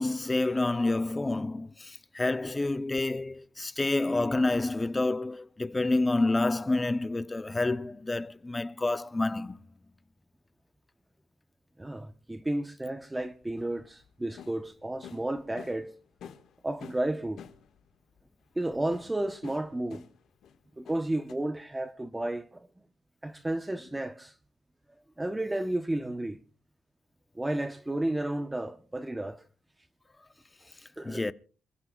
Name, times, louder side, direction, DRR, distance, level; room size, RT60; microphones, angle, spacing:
voice 1, 0.0-9.6 31.0-31.3, left 2 dB, 20° left, 0.7 m, -28 dB
voice 2, 11.8-15.9 16.6-17.4 18.6-20.0 20.8-22.7 23.2-24.4 25.2-26.4 27.3-29.4 31.0-31.3, right 1 dB, 15° right, 1.0 m, -32 dB
sound 1, 13.2-15.9 16.2-17.9 18.7-20.6 20.9-21.3, left 8 dB, 70° left, 1.7 m, -49 dB
27.0 x 15.5 x 2.4 m
cardioid pair, 90°, 0 cm